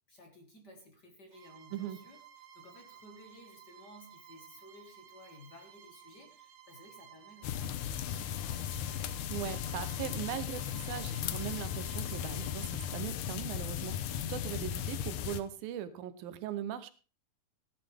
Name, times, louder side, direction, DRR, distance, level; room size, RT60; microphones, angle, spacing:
voice 1, 0.1-8.7, left 1 dB, 45° left, 3 dB, 1.4 m, -56 dB
Bowed string instrument, 1.3-13.1, right 9 dB, 60° right, 2.1 m, -56 dB
sound 1, 7.4-15.4, left 10 dB, 75° left, 1.9 m, -36 dB
voice 2, 9.3-16.9, right 11 dB, 80° right, 13 dB, 2.7 m, -40 dB
15.5 x 10.5 x 3.5 m, 0.35 s
omnidirectional pair, 4.1 m